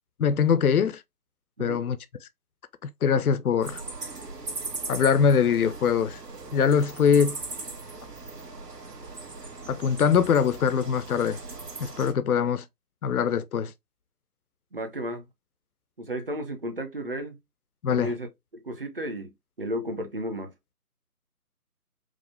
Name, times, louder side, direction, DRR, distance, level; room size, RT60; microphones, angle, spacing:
voice 1, 0.2-1.0 1.6-2.0 3.0-3.8 4.9-6.2 6.5-7.4 9.7-11.4 11.8-12.6 13.0-13.7 17.8-18.1, left 7 dB, 65° left, 0.5 m, -22 dB
sound 1, 3.6-12.1, right 3 dB, 80° right, 1.3 m, -39 dB
voice 2, 14.7-15.2 16.0-17.4 17.9-18.3 18.5-19.3 19.6-20.5, equal, 35° right, 0.8 m, -33 dB
4.9 x 2.0 x 3.4 m
figure-of-eight pair, 155°, 47 cm